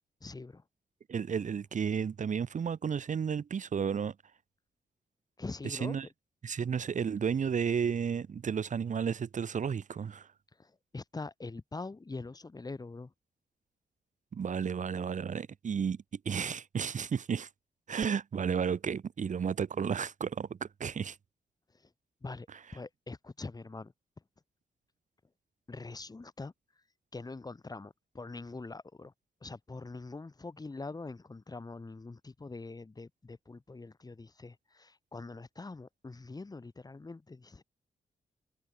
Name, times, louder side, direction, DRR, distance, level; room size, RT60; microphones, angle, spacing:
voice 1, 0.2-0.6 5.4-6.0 10.6-13.1 22.2-22.5 22.7-23.9 25.7-26.5 27.1-29.1 29.4-37.6, left 3 dB, 25° left, 4.2 m, -43 dB
voice 2, 1.1-4.1 5.6-6.1 6.4-10.3 14.3-17.5 17.9-21.2, right 7 dB, 55° right, 3.9 m, -32 dB
cardioid pair, 100°, 15 cm